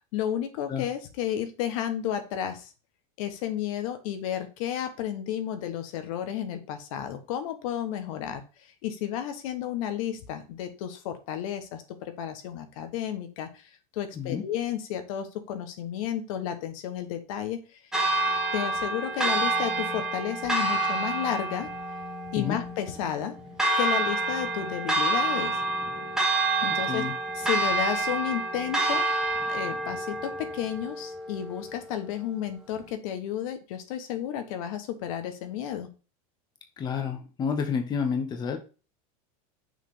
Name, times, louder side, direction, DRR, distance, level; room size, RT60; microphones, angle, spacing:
voice 1, 0.1-2.7 3.2-17.8 18.5-21.7 22.3-23.4 23.8-25.6 26.6-27.0 27.3-29.1 29.5-35.9, left 10 dB, 70° left, 8 dB, 1.2 m, -32 dB
Church bell, 17.9-31.9, right 2 dB, 5° right, 1.1 m, -28 dB
voice 2, 36.8-38.6, left 6 dB, 25° left, 5 dB, 0.9 m, -29 dB
6.3 x 3.3 x 5.5 m, 0.33 s
supercardioid pair, 145°, 18 cm